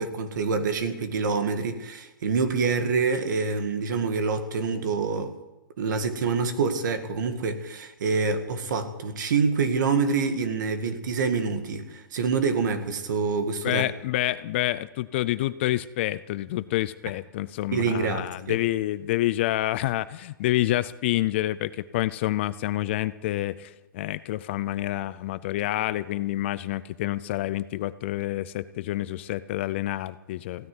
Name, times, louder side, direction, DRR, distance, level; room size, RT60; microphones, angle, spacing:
voice 1, 0.0-5.3 5.8-13.8 17.7-18.6, right 5 dB, 55° right, 2.0 m, -26 dB
voice 2, 13.6-30.7, left 15 dB, 30° left, 0.4 m, -28 dB
16.0 x 9.4 x 9.7 m
hypercardioid pair, 165°, 12 cm